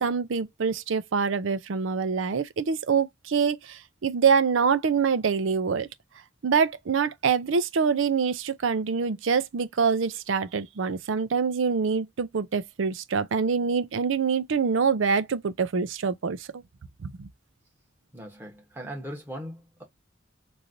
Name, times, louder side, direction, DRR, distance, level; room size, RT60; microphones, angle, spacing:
voice 1, 0.0-5.9 6.4-16.6 17.0-17.3, right 5 dB, 75° right, 0.5 m, -25 dB
voice 2, 18.1-19.8, equal, 10° right, 1.3 m, -39 dB
3.2 x 2.6 x 2.6 m
head